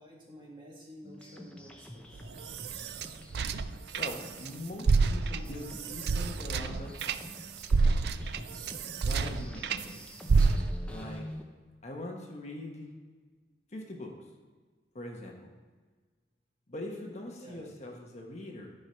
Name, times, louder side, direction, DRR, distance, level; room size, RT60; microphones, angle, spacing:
voice 1, 0.0-2.3 17.4-17.6, equal, 30° right, -4 dB, 2.0 m, -51 dB
sound 1, 1.0-11.4, left 1 dB, 5° left, 0.7 m, -48 dB
sound 2, 2.2-4.5 4.8-9.9 10.3-11.0, right 4 dB, 65° right, 0.4 m, -29 dB
voice 2, 3.9-7.5 9.0-10.0 10.9-11.3 11.8-12.9 13.7-14.1 14.9-15.5 16.7-18.7, left 1 dB, 40° left, 1 dB, 1.1 m, -42 dB
11.5 x 5.3 x 4.4 m, 1.4 s
head